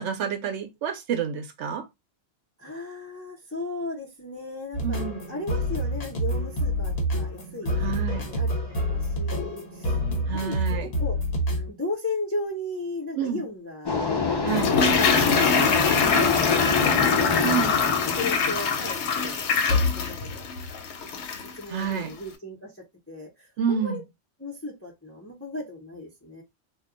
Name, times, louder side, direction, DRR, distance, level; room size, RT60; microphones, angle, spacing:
voice 1, 0.0-1.8 4.8-5.3 7.8-8.2 10.3-10.9 13.2-13.4 14.4-14.7 17.4-17.8 21.7-22.1 23.6-24.0, right 7 dB, 80° right, 0.9 m, -29 dB
voice 2, 2.6-5.0 5.3-7.8 8.1-8.6 8.8-10.6 11.0-11.2 11.7-14.0 14.2-17.4 17.8-20.5 21.0-21.1 21.6-24.0 24.4-26.4, left 2 dB, 15° left, 0.7 m, -36 dB
sound 1, 4.7-11.7, equal, 60° left, 1.2 m, -28 dB
sound 2, 13.9-19.5, left 4 dB, 40° left, 0.3 m, -26 dB
Toilet flush, 14.5-21.6 21.8-21.9, left 5 dB, 75° left, 0.9 m, -24 dB
2.3 x 2.2 x 3.7 m
omnidirectional pair, 1.2 m